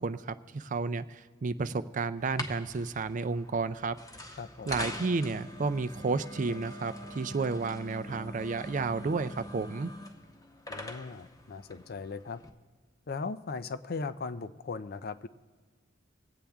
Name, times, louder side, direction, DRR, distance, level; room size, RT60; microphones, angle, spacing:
voice 1, 0.0-4.0 4.7-9.9, right 4 dB, 45° right, 12 dB, 0.4 m, -32 dB
sound 1, 2.2-12.5, left 1 dB, 20° left, 0.9 m, -44 dB
voice 2, 4.4-4.7 10.7-12.4 13.1-15.3, left 4 dB, 55° left, 13 dB, 0.5 m, -38 dB
sound 2, 6.5-10.2, left 1 dB, 75° left, 1.8 m, -55 dB
22.5 x 8.6 x 3.5 m, 1.4 s
head